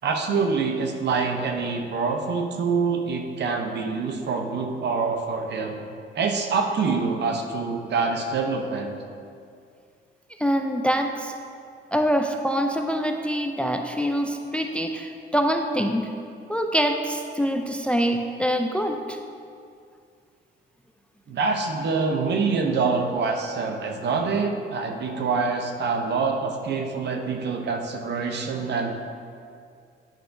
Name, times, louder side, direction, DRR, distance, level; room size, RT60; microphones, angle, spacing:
voice 1, 0.0-5.8 6.1-9.0 21.3-29.0, right 4 dB, 60° right, 4 dB, 0.8 m, -25 dB
voice 2, 10.4-11.3 11.9-16.1 16.5-19.2, equal, 5° left, 4 dB, 0.4 m, -25 dB
8.9 x 5.6 x 2.6 m, 2.3 s
cardioid pair, 90°, 20 cm